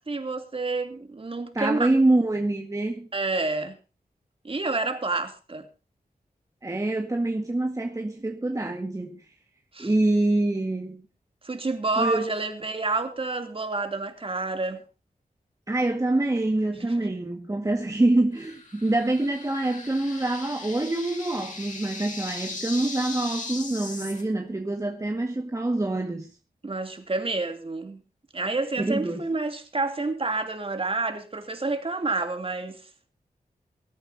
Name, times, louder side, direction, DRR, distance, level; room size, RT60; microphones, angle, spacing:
voice 1, 0.1-1.9 3.1-3.8 4.4-5.7 9.7-9.9 11.4-14.8 16.8-16.9 26.6-28.0 28.3-32.8, right 3 dB, 35° right, 2.9 m, -29 dB
voice 2, 1.5-3.1 6.6-9.2 9.8-11.0 12.0-12.3 15.7-26.3 28.8-29.2, right 2 dB, 20° right, 1.7 m, -25 dB
sound 1, 18.4-24.2, left 3 dB, 55° left, 5.5 m, -38 dB
23.5 x 13.5 x 2.8 m
wide cardioid pair, 120°, 15 cm